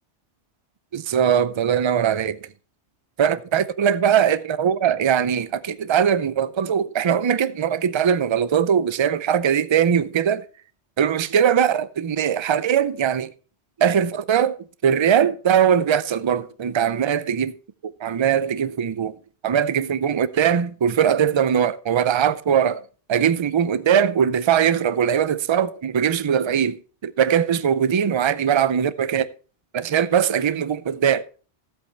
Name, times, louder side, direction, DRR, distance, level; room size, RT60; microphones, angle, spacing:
voice 1, 0.9-2.5 3.2-10.4 11.0-13.3 13.8-14.6 14.8-17.6 18.0-19.2 19.4-29.3 29.7-31.2, right 8 dB, 50° right, 0.3 m, -21 dB
14.0 x 8.2 x 3.3 m
omnidirectional pair, 1.2 m